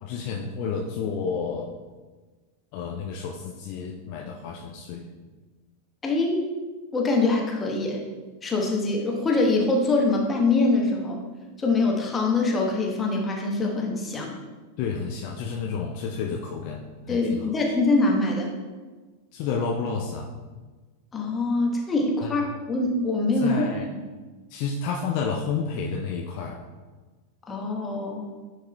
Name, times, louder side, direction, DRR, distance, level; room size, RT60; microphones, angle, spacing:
voice 1, 0.0-1.7 2.7-5.1 14.8-17.7 19.3-20.3 22.2-22.5 23.4-23.9 24.5-26.6, left 5 dB, 45° left, 0 dB, 0.5 m, -30 dB
voice 2, 6.0-6.4 6.9-8.0 8.4-11.2 11.6-14.3 17.1-18.5 21.1-24.0 27.5-28.3, left 2 dB, 20° left, 0 dB, 1.2 m, -24 dB
10.0 x 4.8 x 2.3 m, 1.3 s
figure-of-eight pair, 90°, 0 cm